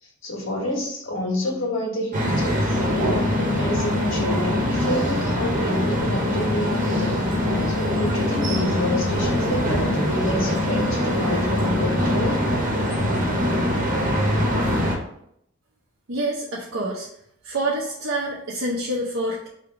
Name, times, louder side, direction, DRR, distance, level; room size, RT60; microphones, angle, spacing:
voice 1, 0.0-7.3 7.7-12.6, left 1 dB, 85° left, -2 dB, 1.6 m, -28 dB
sound 1, 2.1-15.0, left 1 dB, 45° right, 1.0 m, -23 dB
voice 2, 16.1-17.1 17.4-19.5, right 1 dB, 85° right, -4 dB, 0.7 m, -27 dB
3.4 x 2.9 x 4.7 m, 0.73 s
head